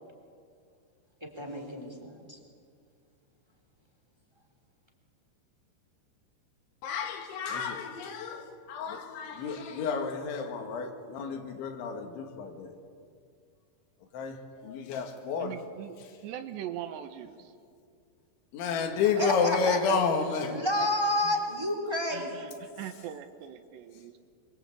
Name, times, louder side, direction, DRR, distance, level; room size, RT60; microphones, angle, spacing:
voice 1, 1.2-2.4 19.2-20.0 20.4-22.6, left 1 dB, 5° right, 3.0 m, -30 dB
voice 2, 6.8-12.8 14.1-15.6 18.5-20.6, left 5 dB, 80° left, 4.4 m, -31 dB
voice 3, 15.4-17.5 19.2-21.4 22.1-24.3, right 10 dB, 75° right, 3.2 m, -42 dB
26.5 x 24.0 x 8.5 m
omnidirectional pair, 5.3 m